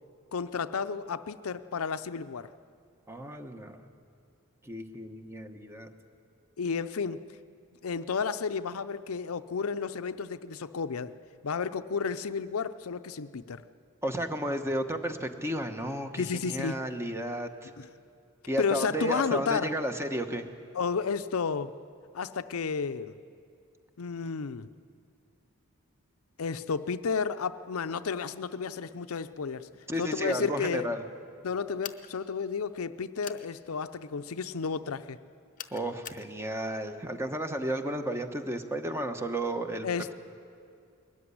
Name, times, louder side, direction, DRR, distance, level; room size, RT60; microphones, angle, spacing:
voice 1, 0.3-2.5 6.6-7.2 7.8-11.1 11.4-13.6 16.2-16.9 17.8-17.9 18.6-19.7 20.7-21.7 22.1-23.2 24.0-24.7 26.4-29.7 30.0-30.9 31.4-35.2 39.8-40.1, left 5 dB, 80° left, 12 dB, 0.6 m, -32 dB
voice 2, 3.1-3.8 4.6-5.9 14.0-17.7 18.5-20.5 29.9-31.0 35.7-39.9, right 1 dB, 10° right, 7 dB, 1.1 m, -33 dB
sound 1, 31.8-32.1 33.2-33.5 35.6-36.3, left 9 dB, 40° left, 0.8 m, -42 dB
20.5 x 14.0 x 9.8 m, 2.4 s
head